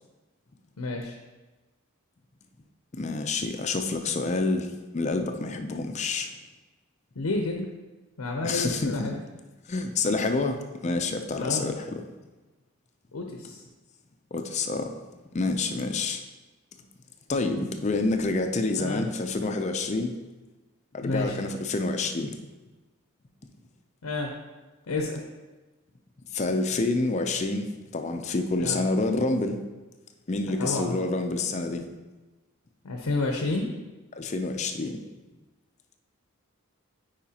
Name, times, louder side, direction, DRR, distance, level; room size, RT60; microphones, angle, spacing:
voice 1, 0.8-1.2 7.2-7.7 8.2-9.2 11.4-11.7 13.1-13.6 18.8-19.1 21.0-21.4 24.0-24.3 24.9-25.2 28.6-28.8 30.6-31.0 32.8-33.7, left 2 dB, 85° left, 2 dB, 0.7 m, -30 dB
voice 2, 2.9-6.3 8.4-9.1 9.7-12.0 14.3-14.9 15.3-16.2 17.3-20.2 20.9-22.4 26.3-29.6 30.3-31.8 34.1-35.0, left 3 dB, 30° left, 6 dB, 0.4 m, -28 dB
8.6 x 5.0 x 2.8 m, 1.2 s
head